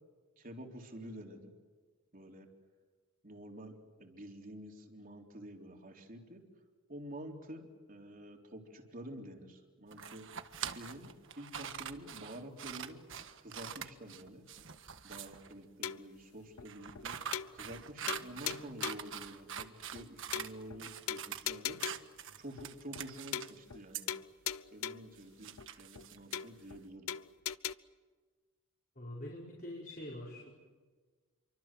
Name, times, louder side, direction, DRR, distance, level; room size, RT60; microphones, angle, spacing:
voice 1, 0.4-1.5 2.1-2.5 3.2-6.4 6.9-10.3 10.7-13.0 13.4-14.5 15.0-21.8 22.4-24.1 24.7-27.1, right 1 dB, 40° right, 2 dB, 3.8 m, -49 dB
sound 1, 9.9-15.5 16.6-20.5 20.8-21.4 21.8-23.6 23.9-24.0 25.2-26.7, right 8 dB, 60° right, 1.5 m, -44 dB
sound 2, 15.8-16.2 16.6-16.7 16.9-17.0 17.3-17.8 18.1-19.1 19.6-19.7 19.9-20.0 20.3-20.8 21.1-22.2 22.6-22.7 22.9-23.1 23.3-23.8 24.1-25.1 25.6-25.7 25.9-26.0 26.3-26.8 27.1-27.7, left 9 dB, 70° left, 0.7 m, -40 dB
voice 2, 29.0-30.5, left 1 dB, 40° left, -3 dB, 5.1 m, -44 dB
29.5 x 24.5 x 7.7 m, 1.4 s
head